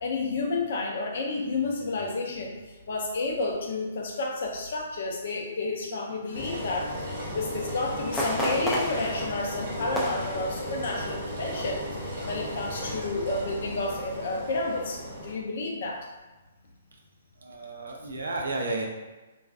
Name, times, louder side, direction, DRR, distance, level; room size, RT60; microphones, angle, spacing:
voice 1, 0.0-2.6 2.9-16.1, left 3 dB, 60° left, 0 dB, 0.5 m, -31 dB
Engine, 6.3-15.3, equal, 50° right, 0.9 m, -36 dB
sound 1, 8.1-11.2 11.5-11.7 12.2-12.6 13.0-13.1, equal, ahead, 0.4 m, -32 dB
voice 2, 17.4-18.9, right 2 dB, 75° right, 1 dB, 0.5 m, -32 dB
2.5 x 2.2 x 2.3 m, 1.2 s
figure-of-eight pair, 130°, 0 cm